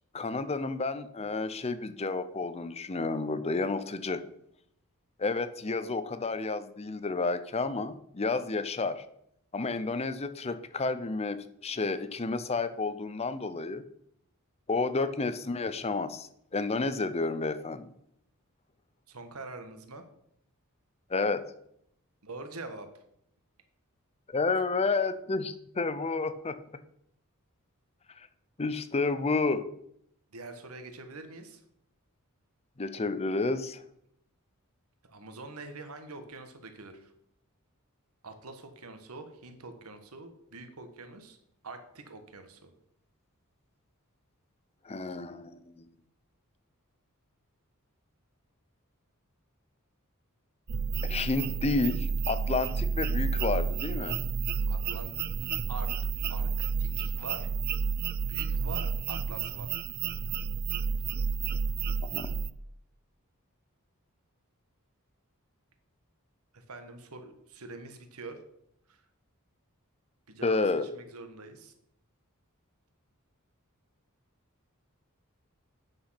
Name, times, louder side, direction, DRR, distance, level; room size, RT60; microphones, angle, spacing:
voice 1, 0.1-4.2 5.2-9.0 9.5-13.8 14.7-17.9 21.1-21.4 24.3-26.6 28.6-29.7 32.8-33.8 44.9-45.9 51.0-54.2 62.1-62.3 70.4-70.9, left 3 dB, 30° left, 13 dB, 0.6 m, -30 dB
voice 2, 19.1-20.1 22.2-22.9 30.3-31.6 35.0-37.1 38.2-41.4 41.6-42.7 54.7-55.1 55.7-55.9 56.3-56.5 56.8-57.5 58.2-59.7 66.5-68.4 68.9-69.0 70.3-71.7, right 3 dB, 80° right, 7 dB, 1.4 m, -44 dB
sound 1, 50.7-62.5, right 6 dB, 45° right, 0.4 m, -31 dB
8.7 x 6.3 x 5.7 m, 0.72 s
head